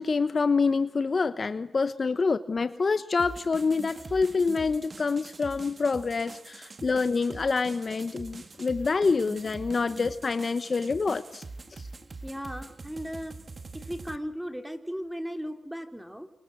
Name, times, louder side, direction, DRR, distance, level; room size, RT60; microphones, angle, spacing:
voice 1, 0.0-11.4, left 4 dB, 50° left, 13 dB, 1.0 m, -26 dB
sound 1, 3.2-14.2, right 3 dB, 45° right, 1.9 m, -44 dB
voice 2, 12.2-13.4 13.7-16.3, equal, 5° right, 7 dB, 3.1 m, -36 dB
30.0 x 26.5 x 6.3 m, 0.87 s
cardioid pair, 70°, 0 cm